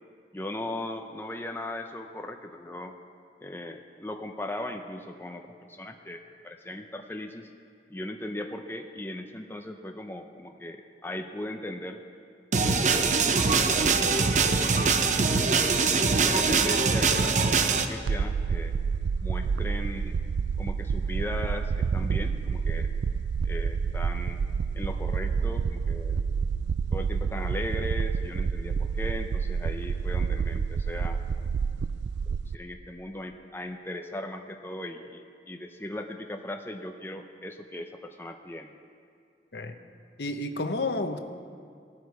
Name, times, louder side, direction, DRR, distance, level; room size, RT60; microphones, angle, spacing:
voice 1, 0.3-3.0 3.4-7.5 7.9-12.0 12.6-15.1 15.4-18.7 19.2-20.2 20.6-22.9 23.4-24.4 24.7-26.3 26.9-31.2 32.5-38.7, left 1 dB, 10° left, 4 dB, 0.5 m, -38 dB
sound 1, 12.5-17.8, right 4 dB, 40° right, 0.7 m, -23 dB
sound 2, 18.1-32.6, right 5 dB, 80° right, 0.3 m, -29 dB
voice 2, 40.2-41.2, left 2 dB, 70° left, 7 dB, 0.9 m, -30 dB
16.0 x 12.5 x 4.8 m, 2.3 s
head